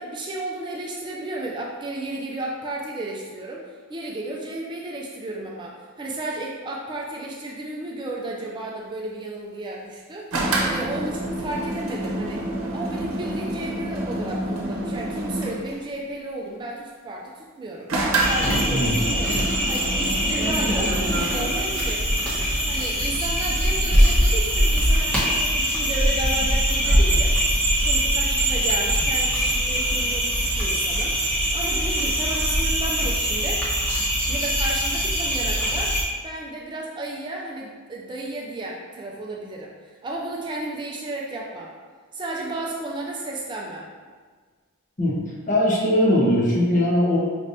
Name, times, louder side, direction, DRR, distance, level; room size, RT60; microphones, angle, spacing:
voice 1, 0.0-12.4 12.7-17.9 18.3-19.4 19.7-22.1 22.7-27.4 27.8-33.7 34.3-41.7 42.1-43.9, right 2 dB, 20° right, -2 dB, 0.4 m, -33 dB
sound 1, 10.3-15.7 17.9-21.3, right 1 dB, 80° right, 0.8 m, -28 dB
sound 2, 18.2-36.0, equal, 5° left, 1.1 m, -22 dB
voice 2, 45.5-47.2, left 1 dB, 35° left, -5 dB, 1.0 m, -20 dB
5.1 x 3.3 x 2.6 m, 1.5 s
head